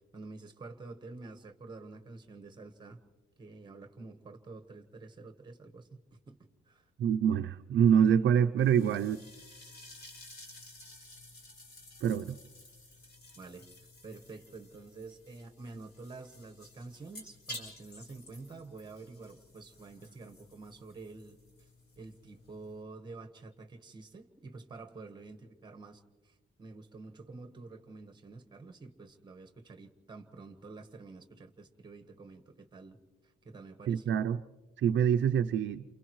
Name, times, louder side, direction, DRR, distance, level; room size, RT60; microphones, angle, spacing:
voice 1, 0.1-3.0 3.4-5.9 6.3-6.4 6.7-6.9 13.3-21.4 22.0-33.0 33.4-34.2, right 3 dB, 20° right, 7 dB, 1.3 m, -48 dB
voice 2, 7.0-9.2 12.0-12.4 33.9-34.4 34.8-35.8, right 8 dB, 65° right, 7 dB, 0.6 m, -26 dB
sound 1, 8.6-22.8, left 1 dB, 55° left, 5.5 m, -52 dB
29.5 x 28.0 x 3.1 m, 1.3 s
cardioid pair, 165°, 21 cm